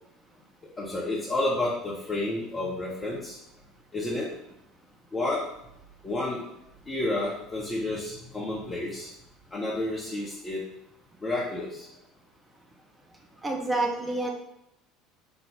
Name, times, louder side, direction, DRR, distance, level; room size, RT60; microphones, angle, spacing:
voice 1, 0.8-3.4 3.9-4.3 5.1-5.4 6.0-6.4 6.9-9.1 9.5-10.6 11.2-11.9, left 2 dB, 25° left, -5 dB, 0.7 m, -30 dB
voice 2, 13.4-14.3, right 2 dB, 20° right, 1 dB, 0.6 m, -28 dB
4.2 x 2.0 x 3.4 m, 0.80 s
figure-of-eight pair, 65°, 0 cm